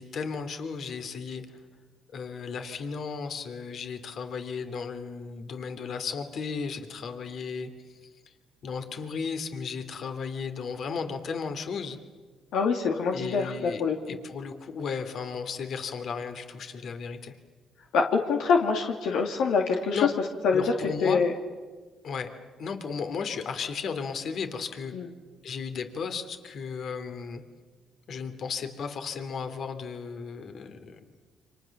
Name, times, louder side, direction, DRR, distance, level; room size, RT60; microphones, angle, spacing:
voice 1, 0.0-1.4 2.1-7.7 8.6-12.0 13.1-13.8 14.1-17.3 19.9-20.1 20.5-21.2 22.0-22.3 22.6-24.9 25.4-27.4 28.1-31.0, left 5 dB, 60° left, 7 dB, 3.0 m, -34 dB
voice 2, 12.5-14.2 17.9-20.0 20.4-20.7 21.0-21.3 24.9-25.1, left 5 dB, 85° left, 2 dB, 2.5 m, -25 dB
29.5 x 26.5 x 7.3 m, 1.4 s
cardioid pair, 90°, 0 cm